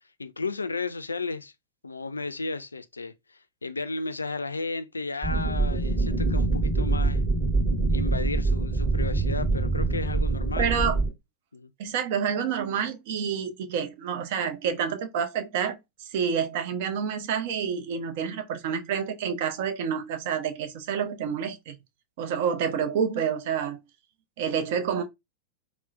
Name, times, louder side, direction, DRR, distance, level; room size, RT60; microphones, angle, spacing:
voice 1, 0.2-1.5 1.8-7.2 7.9-10.8 11.5-11.7, left 3 dB, 80° left, 0.3 m, -34 dB
sound 1, 5.2-11.1, right 3 dB, 15° right, 2.1 m, -25 dB
voice 2, 10.6-11.0 11.8-21.8 22.2-23.8 24.4-25.0, right 7 dB, 50° right, 0.6 m, -28 dB
3.7 x 2.0 x 2.5 m
figure-of-eight pair, 90°, 0 cm